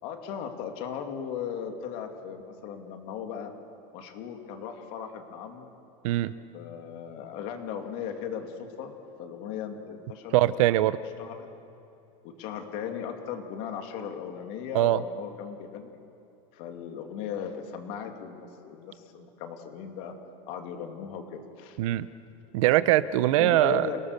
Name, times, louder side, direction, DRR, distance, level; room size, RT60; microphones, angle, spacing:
voice 1, 0.0-3.5 3.9-5.7 6.5-8.9 9.2-10.4 11.2-11.5 12.2-15.9 16.5-20.1 20.5-21.8 23.4-24.0, left 8 dB, 50° left, 4 dB, 2.7 m, -37 dB
voice 2, 10.3-11.0 14.7-15.0 21.8-22.1 22.5-23.9, right 14 dB, 65° right, 15 dB, 0.8 m, -22 dB
29.5 x 18.5 x 6.8 m, 2.8 s
supercardioid pair, 165°, 18 cm